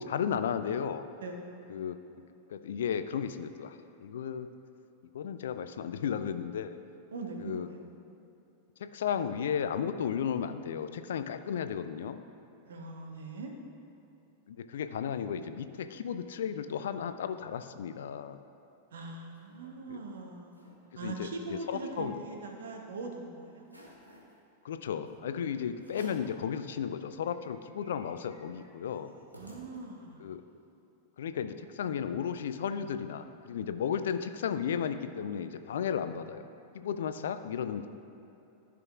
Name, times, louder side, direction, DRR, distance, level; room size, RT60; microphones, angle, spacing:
voice 1, 0.0-1.0 1.7-2.0 2.5-4.5 5.1-6.8 7.4-7.7 8.8-12.2 14.5-18.4 19.9-20.0 21.0-22.2 24.6-29.1 30.2-30.5 31.2-36.5 36.7-37.9, left 8 dB, 60° left, 10 dB, 0.4 m, -34 dB
voice 2, 7.1-7.8 12.6-13.5 18.9-20.6 21.0-23.7 29.4-30.3, right 3 dB, 65° right, 2 dB, 1.0 m, -41 dB
sound 1, 18.9-19.7 20.1-20.2 20.4-20.8 21.2-22.8 23.2-23.3 23.6-24.3 25.1-25.2 25.8-26.4 26.8-26.9 27.2-30.2, equal, 90° right, 1.2 m, -56 dB
13.5 x 6.1 x 2.4 m, 2.9 s
figure-of-eight pair, 90°, 0 cm